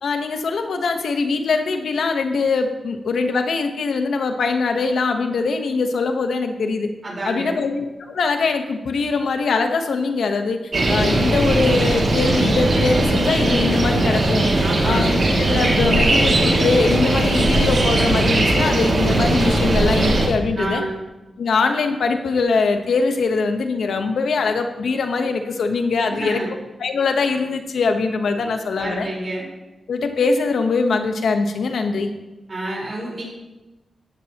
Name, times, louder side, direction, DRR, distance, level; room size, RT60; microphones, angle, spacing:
voice 1, 0.0-6.9 7.2-10.6 10.9-14.5 14.8-20.8 21.4-26.4 26.8-29.1 29.9-32.1, left 4 dB, 80° left, 6 dB, 1.0 m, -22 dB
voice 2, 7.0-7.6 14.6-15.1 20.6-21.0 26.1-26.5 28.4-28.5 28.8-29.5 32.5-33.2, right 2 dB, 35° right, -3 dB, 4.2 m, -29 dB
sound 1, 10.7-20.3, right 2 dB, 55° right, 2.3 m, -18 dB
14.5 x 11.5 x 2.9 m, 1.1 s
wide cardioid pair, 135°, 0 cm